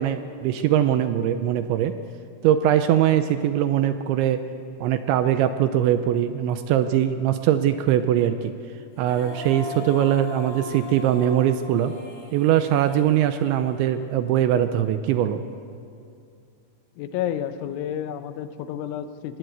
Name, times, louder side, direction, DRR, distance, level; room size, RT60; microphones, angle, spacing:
voice 1, 0.0-1.9 2.4-4.4 4.8-8.5 9.0-11.9 12.3-15.4, right 11 dB, 80° right, 9 dB, 2.8 m, -21 dB
Female singing, 8.9-14.1, left 3 dB, 65° left, 6.7 m, -39 dB
voice 2, 17.0-19.4, left 10 dB, 80° left, 10 dB, 3.0 m, -30 dB
22.5 x 18.5 x 8.0 m, 2.4 s
omnidirectional pair, 5.8 m